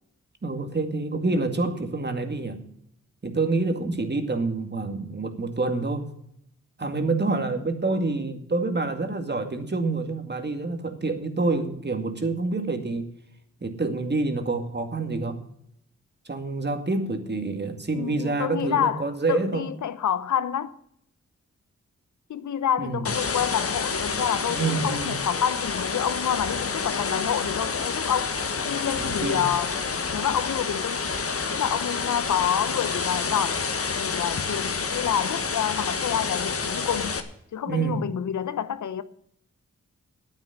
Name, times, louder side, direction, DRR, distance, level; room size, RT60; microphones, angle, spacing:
voice 1, 0.4-2.6 3.2-6.1 6.8-13.1 13.6-15.4 16.3-19.7 22.8-23.1 24.5-25.1 29.0-29.5 37.7-38.0, right 3 dB, 35° right, 2.2 m, -27 dB
voice 2, 17.9-20.8 22.3-29.8 30.1-31.0 31.5-33.6 33.9-37.2 37.5-39.0, left 9 dB, 75° left, 0.8 m, -28 dB
sound 1, 23.0-37.2, left 5 dB, 50° left, 1.4 m, -29 dB
9.2 x 9.0 x 8.1 m
cardioid pair, 55°, 30 cm